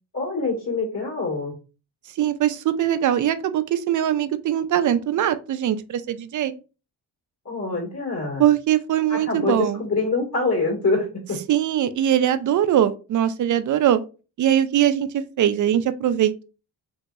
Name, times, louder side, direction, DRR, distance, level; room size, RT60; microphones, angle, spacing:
voice 1, 0.1-1.5 7.4-8.4 9.1-11.4, left 3 dB, 40° left, -2 dB, 1.4 m, -25 dB
voice 2, 2.2-6.5 8.4-9.8 11.5-14.0 14.4-16.4, right 10 dB, 45° right, 12 dB, 0.4 m, -21 dB
2.8 x 2.6 x 2.2 m, 0.33 s
supercardioid pair, 55°, 43 cm